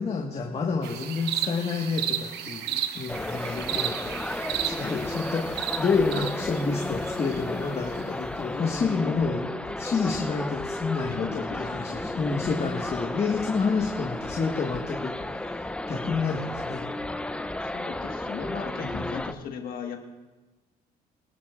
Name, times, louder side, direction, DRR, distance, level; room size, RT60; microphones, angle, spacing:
voice 1, 0.0-4.2 4.5-16.9 18.8-19.3, left 4 dB, 35° left, 0 dB, 1.5 m, -29 dB
sound 1, 0.8-8.0, right 11 dB, 80° right, 0.8 m, -33 dB
sound 2, 3.1-19.3, left 1 dB, 5° left, 0.5 m, -33 dB
voice 2, 4.8-5.2 8.5-9.4 11.1-12.6 13.6-13.8 17.6-20.0, left 6 dB, 60° left, 3 dB, 1.6 m, -38 dB
24.0 x 11.5 x 2.5 m, 1.2 s
cardioid pair, 110°, 17 cm